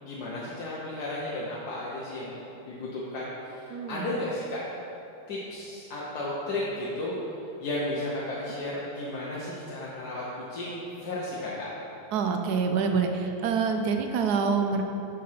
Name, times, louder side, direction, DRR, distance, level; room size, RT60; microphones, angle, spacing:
voice 1, 0.0-4.6 5.3-7.1 7.6-11.7, left 1 dB, 75° left, -6 dB, 1.5 m, -34 dB
voice 2, 3.7-4.1 12.1-14.8, right 5 dB, 80° right, 5 dB, 1.2 m, -26 dB
7.6 x 4.3 x 5.7 m, 2.9 s
omnidirectional pair, 1.7 m